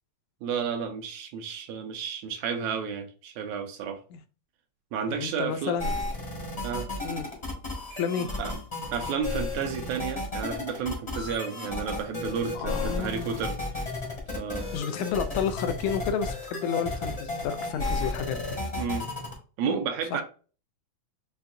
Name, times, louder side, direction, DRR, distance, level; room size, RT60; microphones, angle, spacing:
voice 1, 0.4-4.0 4.9-5.8 6.6-6.9 8.4-8.6 8.9-13.6 14.4-14.7 18.8-19.1 19.6-20.2, right 6 dB, 80° right, 2.0 m, -31 dB
voice 2, 5.1-5.9 7.0-7.3 8.0-8.3 12.5-13.4 14.7-18.6 20.1-20.2, left 7 dB, 80° left, 1.9 m, -31 dB
sound 1, 5.8-19.3, left 2 dB, 35° left, 0.5 m, -33 dB
5.7 x 2.5 x 2.5 m
omnidirectional pair, 3.4 m